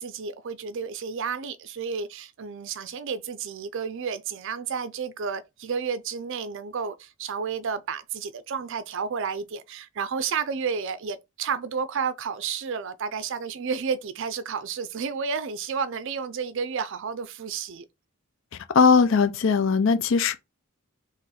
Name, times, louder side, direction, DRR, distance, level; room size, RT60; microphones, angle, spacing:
voice 1, 0.0-17.8, right 6 dB, 60° right, 0.4 m, -31 dB
voice 2, 18.7-20.4, left 5 dB, 60° left, 0.4 m, -19 dB
3.8 x 3.0 x 4.2 m
head